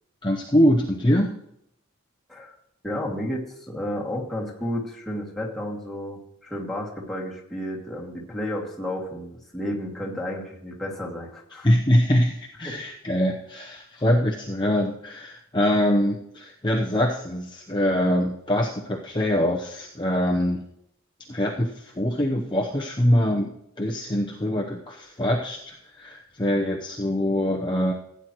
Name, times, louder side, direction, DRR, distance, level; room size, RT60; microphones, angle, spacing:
voice 1, 0.2-1.4 11.6-20.6 21.3-23.5 23.8-27.9, equal, 25° left, -1 dB, 0.9 m, -23 dB
voice 2, 2.8-11.7 12.6-12.8, left 1 dB, ahead, -4 dB, 2.3 m, -32 dB
16.0 x 9.3 x 3.1 m, 0.74 s
head